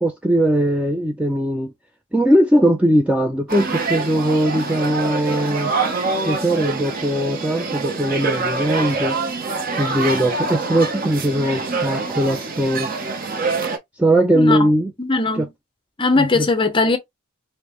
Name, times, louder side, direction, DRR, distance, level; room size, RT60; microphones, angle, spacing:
voice 1, 0.0-1.7 2.1-5.7 6.2-9.2 9.8-12.9 14.0-14.9 15.3-15.5 16.2-16.5, right 1 dB, 5° right, 0.3 m, -19 dB
sound 1, 3.5-13.8, right 3 dB, 40° right, 0.7 m, -25 dB
voice 2, 14.3-14.7 15.0-15.5 16.0-17.0, left 3 dB, 25° left, 0.6 m, -19 dB
5.1 x 2.1 x 2.9 m
head